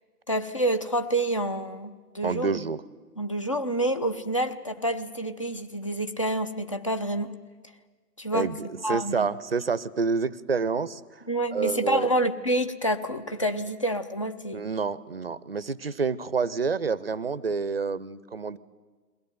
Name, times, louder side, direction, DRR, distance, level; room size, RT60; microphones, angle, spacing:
voice 1, 0.3-2.6 3.2-7.3 8.2-8.5 8.8-9.3 11.3-14.6, right 1 dB, 20° left, 8 dB, 0.6 m, -28 dB
voice 2, 2.2-2.8 8.3-11.2 11.5-12.1 14.5-18.6, right 5 dB, 40° right, 19 dB, 0.7 m, -28 dB
22.0 x 17.5 x 9.5 m, 1.4 s
figure-of-eight pair, 140°, 48 cm